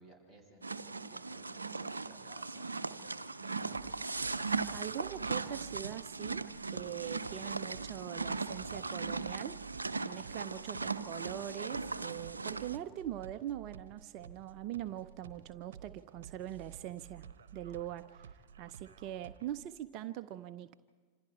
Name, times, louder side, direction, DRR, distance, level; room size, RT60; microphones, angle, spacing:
voice 1, 0.0-4.4 8.6-8.7, equal, 15° left, 1 dB, 7.5 m, -59 dB
sound 1, 0.6-12.8, right 4 dB, 80° right, 0.6 m, -38 dB
sound 2, 3.7-19.7, right 8 dB, 60° right, 1.0 m, -53 dB
voice 2, 4.7-6.5 6.7-9.6 10.0-17.2 17.5-20.7, right 12 dB, 40° right, 12 dB, 0.6 m, -42 dB
27.0 x 26.5 x 4.5 m, 1.5 s
figure-of-eight pair, 90°, 0 cm